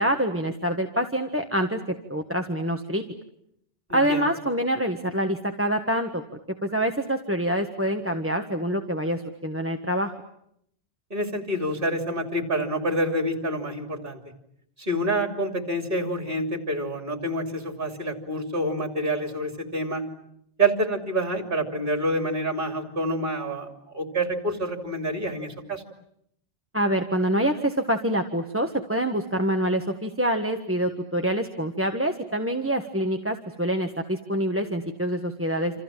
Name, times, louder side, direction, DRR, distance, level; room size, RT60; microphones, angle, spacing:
voice 1, 0.0-1.8 2.1-3.0 3.9-6.2 6.6-10.1 26.7-35.8, right 1 dB, 10° right, 5 dB, 1.4 m, -26 dB
voice 2, 3.9-4.2 11.1-14.2 14.8-20.0 20.6-25.8, right 1 dB, 50° right, 5 dB, 3.4 m, -27 dB
28.5 x 27.5 x 7.5 m, 0.73 s
omnidirectional pair, 1.2 m